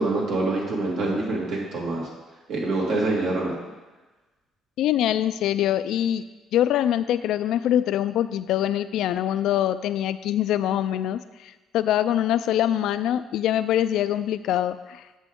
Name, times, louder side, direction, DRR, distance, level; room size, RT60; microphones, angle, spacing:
voice 1, 0.0-2.1 2.5-3.6, right 2 dB, 70° right, -3 dB, 2.2 m, -25 dB
voice 2, 4.8-6.2 6.5-15.0, left 11 dB, 75° left, 13 dB, 0.3 m, -24 dB
8.3 x 6.7 x 3.6 m, 1.2 s
cardioid pair, 100°, 0 cm